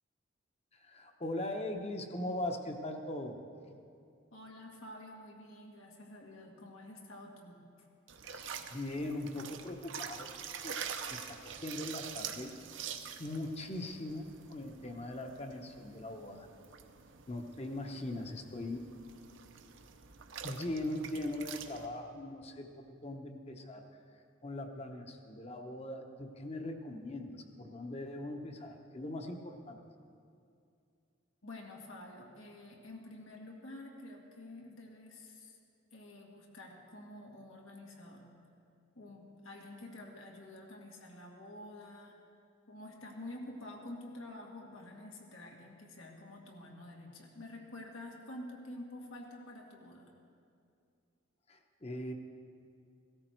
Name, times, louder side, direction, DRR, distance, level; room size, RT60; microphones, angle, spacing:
voice 1, 0.7-3.4 8.2-10.3 10.6-12.5 13.2-16.5 17.3-18.9 20.4-23.8 24.4-29.8 51.5-52.1, left 1 dB, 30° left, 4 dB, 1.0 m, -40 dB
voice 2, 4.3-7.9 31.4-35.6 35.9-38.3 39.0-42.2 42.7-50.1, left 1 dB, 85° left, -1 dB, 2.0 m, -49 dB
sound 1, 8.1-21.9, right 7 dB, 65° right, 0.8 m, -46 dB
16.5 x 13.5 x 4.5 m, 2.4 s
head